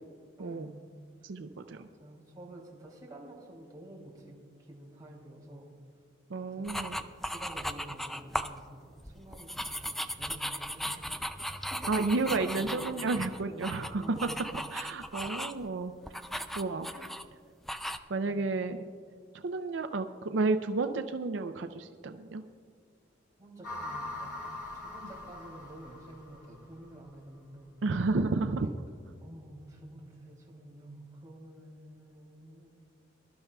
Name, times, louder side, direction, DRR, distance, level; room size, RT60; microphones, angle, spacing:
voice 1, 0.4-0.9 1.2-1.3 1.7-5.7 6.4-11.2 11.7-13.4 13.9-14.5 15.2-15.3 16.9-17.1 23.4-27.7 28.6-28.7 29.2-32.7, right 1 dB, 20° right, -3 dB, 2.8 m, -50 dB
voice 2, 1.2-1.9 6.3-7.0 11.9-14.3 14.7-16.9 18.1-18.9 19.4-22.4 27.8-28.7, right 3 dB, 80° right, 8 dB, 0.5 m, -31 dB
sound 1, 6.6-8.6 9.0-15.6 16.0-17.3 17.7-18.0, equal, ahead, 0.3 m, -37 dB
sound 2, 23.6-26.9, left 2 dB, 55° left, 3.4 m, -42 dB
23.5 x 12.0 x 2.3 m, 2.1 s
head